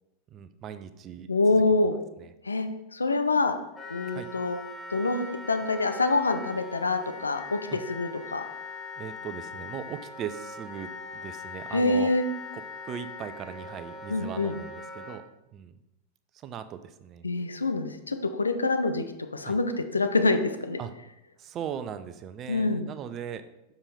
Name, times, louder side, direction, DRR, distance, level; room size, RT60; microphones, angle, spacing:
voice 1, 0.3-1.6 2.2-2.3 4.1-4.3 7.7-7.8 9.0-12.1 12.5-15.2 15.5-15.8 16.3-17.3 19.4-19.6 20.8-20.9 21.4-23.4, right 8 dB, 30° right, 10 dB, 0.5 m, -39 dB
voice 2, 1.3-2.0 2.4-2.7 2.9-3.5 3.9-4.6 4.9-7.6 7.9-8.4 11.7-12.2 14.1-14.5 17.2-19.0 19.3-19.6 19.9-20.8 22.5-22.9, left 3 dB, 75° left, 7 dB, 0.6 m, -25 dB
Wind instrument woodwind instrument, 3.7-15.2, left 3 dB, 15° left, 1.1 m, -41 dB
7.2 x 5.1 x 4.1 m, 0.92 s
figure-of-eight pair, 90°, 0 cm